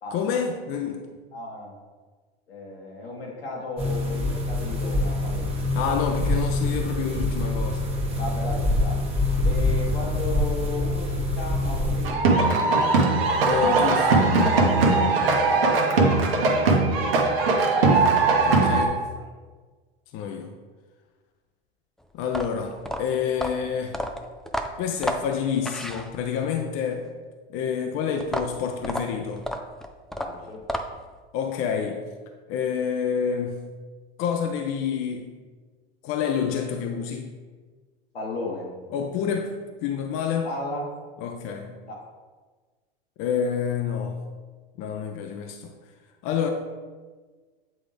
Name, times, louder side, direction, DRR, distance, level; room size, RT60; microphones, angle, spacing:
voice 1, 0.1-1.0 5.7-8.0 13.5-14.3 18.0-18.2 18.5-19.1 20.1-20.5 22.1-24.0 24.8-27.1 27.5-29.5 31.3-32.0 32.5-33.7 34.2-35.3 36.0-37.3 38.9-40.5 41.2-41.8 43.2-44.2 44.8-45.7 46.2-46.5, left 7 dB, 45° left, 4 dB, 0.6 m, -28 dB
voice 2, 1.3-1.7 2.5-5.7 8.2-9.0 9.4-12.5 14.9-16.2 19.2-19.3 30.2-30.6 38.1-38.7 40.4-40.9 41.9-42.0, left 2 dB, 90° left, -3 dB, 1.8 m, -35 dB
sound 1, 3.8-12.1, left 1 dB, 20° right, 1.4 m, -25 dB
sound 2, 12.0-18.9, right 3 dB, 75° right, 1.1 m, -20 dB
sound 3, 22.2-26.5 28.2-31.2, equal, ahead, 0.3 m, -32 dB
8.3 x 3.7 x 3.4 m, 1.4 s
hypercardioid pair, 90°, 29 cm